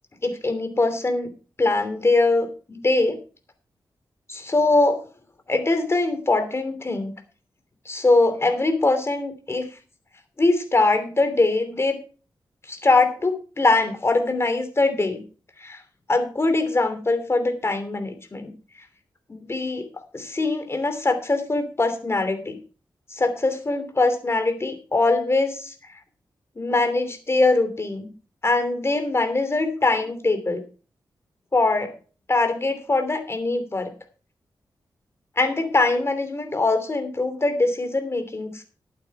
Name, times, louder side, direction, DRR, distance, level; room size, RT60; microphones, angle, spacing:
voice 1, 0.2-1.3 1.6-3.2 4.3-5.1 5.5-7.1 7.8-9.7 10.4-12.0 12.7-15.2 15.6-15.8 16.1-18.5 19.3-19.9 20.1-22.6 23.1-25.7 26.6-28.1 28.4-30.6 31.5-31.9 32.3-33.9 35.4-38.6, left 2 dB, 30° left, 8 dB, 2.9 m, -22 dB
12.0 x 8.9 x 4.8 m, 0.36 s
wide cardioid pair, 85°, 8 cm